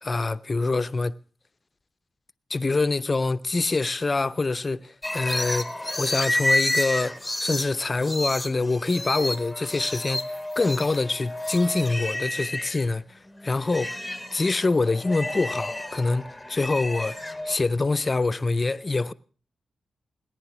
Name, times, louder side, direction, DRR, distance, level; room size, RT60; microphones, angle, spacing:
voice 1, 0.0-1.1 2.5-5.7 6.0-14.0 14.3-19.1, left 3 dB, 35° left, 0.7 m, -25 dB
sound 1, 5.0-12.8 13.3-17.6, left 1 dB, 10° left, 1.4 m, -30 dB
18.5 x 10.5 x 6.1 m
supercardioid pair, 45°, 0 cm